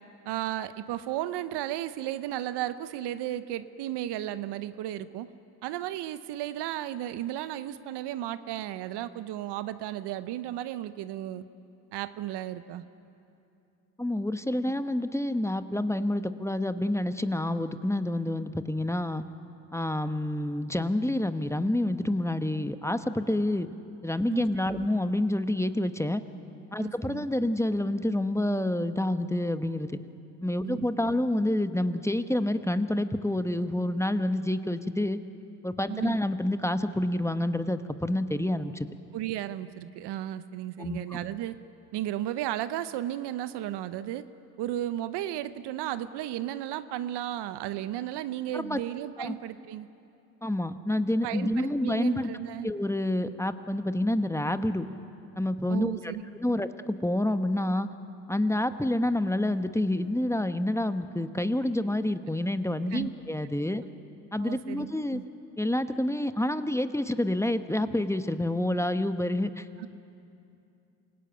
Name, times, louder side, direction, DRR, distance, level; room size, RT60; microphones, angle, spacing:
voice 1, 0.2-5.3 5.6-11.4 11.9-12.8 24.3-24.9 26.8-27.3 30.6-31.2 35.9-36.2 39.1-41.6 41.9-44.2 44.6-49.9 51.2-52.7 55.7-56.6 62.9-63.1 64.4-65.2 69.8-69.9, right 13 dB, 70° right, 13 dB, 1.0 m, -34 dB
voice 2, 14.0-19.2 19.7-23.7 24.0-26.2 26.7-29.9 30.4-35.2 35.6-38.9 40.8-41.2 48.5-48.8 49.2-49.4 50.4-52.3 52.6-54.9 55.4-56.1 56.4-57.9 58.3-63.8 64.3-65.2 65.6-69.9, left 1 dB, 5° left, 10 dB, 1.2 m, -28 dB
27.0 x 17.0 x 9.2 m, 2.7 s
hypercardioid pair, 55°, 41 cm